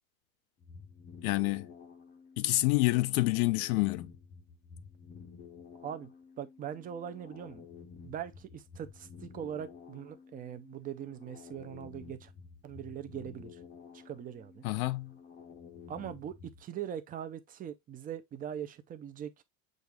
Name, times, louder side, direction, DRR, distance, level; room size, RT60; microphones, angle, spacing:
sound 1, 0.6-16.6, left 6 dB, 20° left, 0.6 m, -52 dB
voice 1, 1.2-1.7 2.4-4.1 14.6-15.1, left 20 dB, 80° left, 0.5 m, -28 dB
voice 2, 6.4-7.7 8.0-12.3 12.6-13.6 14.0-14.6 15.9-19.4, right 9 dB, 20° right, 0.4 m, -41 dB
6.3 x 2.4 x 3.4 m
supercardioid pair, 130°, 43 cm